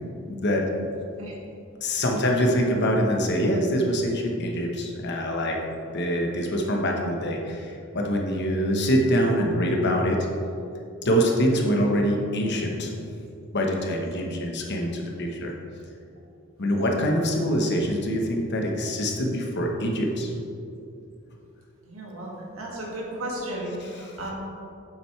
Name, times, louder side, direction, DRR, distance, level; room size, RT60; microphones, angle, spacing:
voice 1, 0.3-0.6 1.8-5.6 5.9-10.2 11.0-12.9 13.5-15.5 16.6-20.3 23.9-24.1, equal, 55° left, 1 dB, 1.2 m, -24 dB
voice 2, 21.9-24.3, right 1 dB, 85° right, -3 dB, 2.0 m, -34 dB
9.0 x 7.6 x 3.3 m, 2.6 s
head